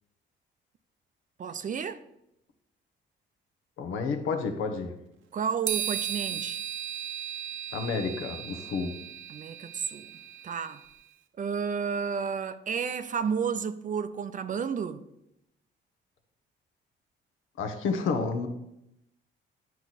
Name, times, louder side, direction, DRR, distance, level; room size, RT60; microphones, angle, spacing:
voice 1, 1.4-2.0 5.3-6.6 9.3-10.1 10.4-10.8 11.4-15.0, right 6 dB, 40° right, 0.5 m, -31 dB
voice 2, 3.8-4.9 7.7-8.9 17.6-18.5, left 4 dB, 85° left, 1.1 m, -30 dB
sound 1, 5.7-11.0, right 10 dB, 75° right, 0.7 m, -36 dB
10.0 x 4.6 x 4.1 m
cardioid pair, 90°, 20 cm